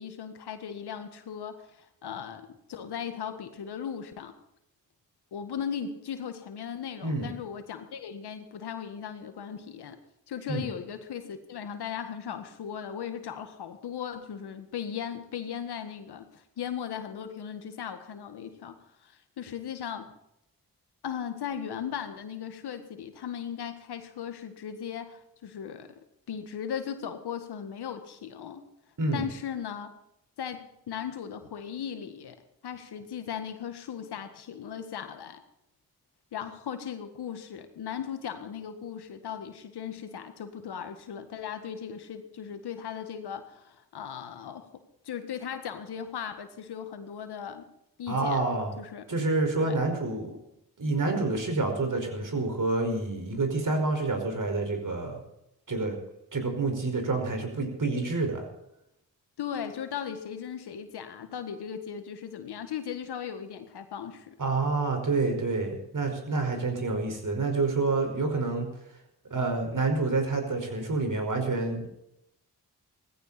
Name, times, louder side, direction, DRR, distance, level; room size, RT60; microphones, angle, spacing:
voice 1, 0.0-4.4 5.3-10.0 10.3-20.1 21.0-25.9 26.3-28.7 29.1-29.9 30.4-32.3 32.6-35.4 36.3-44.7 45.0-47.6 48.0-48.4 48.8-49.0 49.6-49.8 59.4-64.4, left 8 dB, 80° left, 8 dB, 1.8 m, -37 dB
voice 2, 48.1-48.7 49.1-50.4 50.8-55.2 55.7-56.0 56.3-58.5 64.4-68.7 69.3-71.9, right 3 dB, 50° right, 4 dB, 5.2 m, -28 dB
17.5 x 15.5 x 4.3 m, 0.82 s
supercardioid pair, 45°, 39 cm